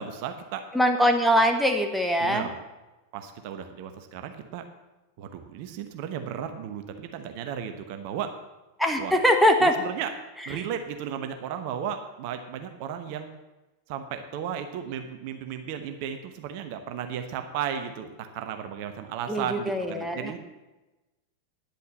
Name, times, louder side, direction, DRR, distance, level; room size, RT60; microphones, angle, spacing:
voice 1, 0.0-0.7 2.2-2.5 3.1-4.6 5.2-8.3 9.0-9.1 9.6-10.1 10.5-13.3 13.9-20.4, right 8 dB, 45° right, 7 dB, 1.0 m, -34 dB
voice 2, 0.7-2.5 8.8-9.7 10.5-10.7 19.3-20.3, equal, ahead, 4 dB, 1.4 m, -22 dB
10.5 x 8.3 x 7.6 m, 1.1 s
figure-of-eight pair, 90°, 0 cm